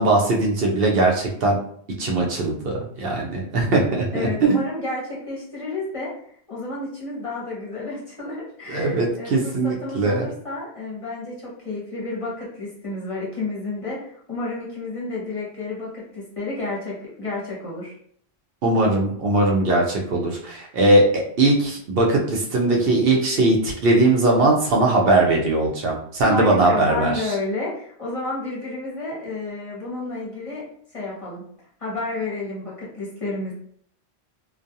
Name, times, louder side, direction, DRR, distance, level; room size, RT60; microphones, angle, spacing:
voice 1, 0.0-1.6 2.0-4.6 8.7-10.3 18.6-27.3, right 2 dB, 70° right, -1 dB, 0.8 m, -20 dB
voice 2, 4.1-6.1 6.5-17.9 26.2-30.6 30.9-31.4 31.8-33.5, left 2 dB, 35° left, -6 dB, 0.8 m, -31 dB
2.4 x 2.2 x 2.7 m, 0.63 s
omnidirectional pair, 1.1 m